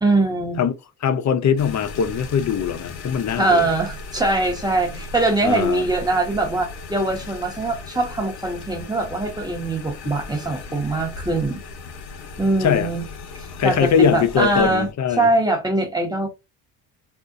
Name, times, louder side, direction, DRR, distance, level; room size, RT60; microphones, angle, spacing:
voice 1, 0.0-0.6 3.4-11.6 12.4-13.0 13.6-14.9 15.2-16.3, right 2 dB, 10° right, 1.2 m, -22 dB
voice 2, 1.0-3.7 5.4-5.8 12.6-12.9 13.6-15.3, left 7 dB, 40° left, 0.6 m, -21 dB
sound 1, 1.6-14.9, left 3 dB, 60° left, 1.2 m, -37 dB
3.4 x 2.5 x 2.6 m
supercardioid pair, 75°, 43 cm